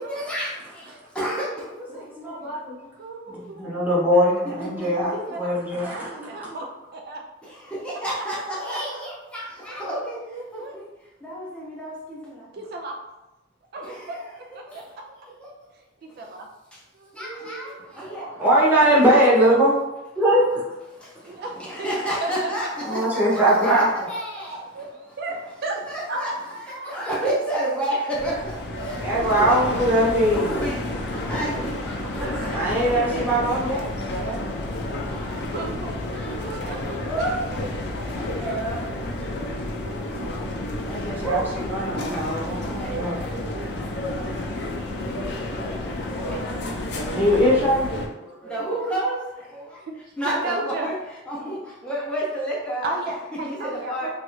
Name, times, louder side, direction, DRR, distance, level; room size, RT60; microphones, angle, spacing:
voice 1, 0.0-2.5 2.8-2.9 4.6-5.4 6.5-6.6 7.4-10.9 11.2-12.5 13.8-14.3 14.6-14.8 15.4-15.7 16.1-16.2 16.7-16.8 17.1-19.1 20.9-25.5 25.9-34.3 34.7-35.5 36.1-39.6 40.8-41.6 42.1-42.4 42.7-44.5 45.8-47.1 48.2-49.8 50.2-53.0 53.3-54.1, right 1 dB, 5° left, -6 dB, 0.5 m, -32 dB
voice 2, 1.3-1.6 2.9-4.6 5.1-6.7 6.9-7.2 9.7-9.8 10.3-10.8 12.5-13.0 13.7-15.0 15.7-16.5 16.9-17.2 21.2-21.9 22.2-22.7 24.7-25.8 26.1-27.0 28.8-29.2 30.9-31.1 31.5-31.6 32.2-32.5 32.8-33.3 34.6-34.7 35.4-35.9 36.4-37.1 39.8-40.4 43.6-43.7 44.5-45.2 47.8-48.0 48.9-49.0 49.7-50.9 52.8-54.1, right 2 dB, 55° right, 2 dB, 0.3 m, -35 dB
voice 3, 1.9-2.8 3.5-6.1 18.1-19.8 20.2-20.6 22.9-23.9 29.0-30.5 32.5-34.4 40.8-41.4 41.7-43.1 47.0-47.9 54.0-54.1, equal, 10° right, -8 dB, 0.9 m, -21 dB
sound 1, 28.1-48.1, left 1 dB, 60° left, 0.5 m, -30 dB
3.0 x 2.4 x 3.0 m, 1.0 s
head